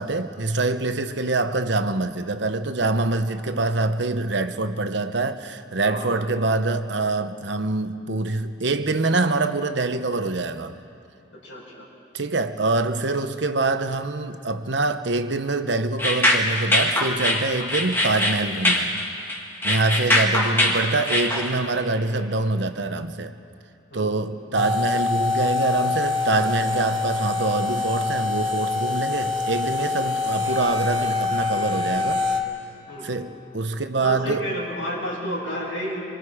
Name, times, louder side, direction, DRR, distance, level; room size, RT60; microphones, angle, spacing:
voice 1, 0.0-10.8 12.1-18.9 19.6-23.3 23.9-32.2 33.0-34.4, right 3 dB, 65° right, 1.0 m, -25 dB
voice 2, 5.8-6.1 11.4-11.8 20.3-20.7 23.9-24.1 32.9-33.2 34.0-36.0, equal, 85° left, 6.7 m, -31 dB
sound 1, 16.0-21.5, left 1 dB, 10° left, 2.0 m, -22 dB
sound 2, 24.5-32.4, left 3 dB, 25° right, 2.6 m, -25 dB
25.5 x 25.0 x 5.0 m
head